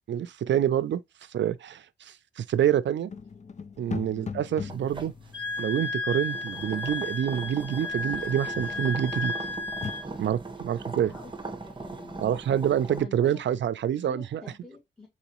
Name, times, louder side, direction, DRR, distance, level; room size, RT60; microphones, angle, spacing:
voice 1, 0.1-1.0 1.3-3.1 3.8-5.1 5.6-9.3 10.2-11.1 12.2-14.4, right 10 dB, 85° right, 0.4 m, -27 dB
sound 1, 3.1-6.9 8.5-9.1 9.5-9.9, left 6 dB, 40° left, 0.5 m, -40 dB
sound 2, 4.7-13.0, right 3 dB, 25° right, 0.9 m, -40 dB
Wind instrument woodwind instrument, 5.3-10.1, left 3 dB, 75° left, 2.9 m, -33 dB
voice 2, 11.0-11.3 11.6-12.2 13.0-13.4 13.9-15.1, left 2 dB, 5° left, 1.8 m, -47 dB
4.3 x 4.0 x 2.9 m
wide cardioid pair, 120°, 18 cm